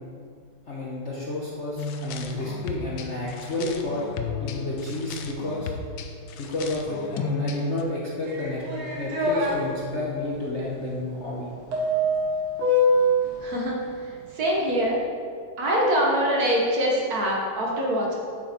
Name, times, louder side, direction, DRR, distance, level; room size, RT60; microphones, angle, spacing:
voice 1, 0.7-4.0 4.4-5.7 6.4-8.6 8.9-11.5, left 2 dB, 45° left, -5 dB, 1.0 m, -31 dB
sound 1, 1.8-7.8, left 3 dB, 80° left, 1.4 m, -34 dB
sound 2, 8.3-9.5 11.7-13.3, equal, 85° right, 2.3 m, -23 dB
voice 2, 13.4-13.8 14.3-15.0 15.6-18.1, equal, 50° right, -2 dB, 1.5 m, -23 dB
8.0 x 6.8 x 4.4 m, 2.2 s
omnidirectional pair, 2.3 m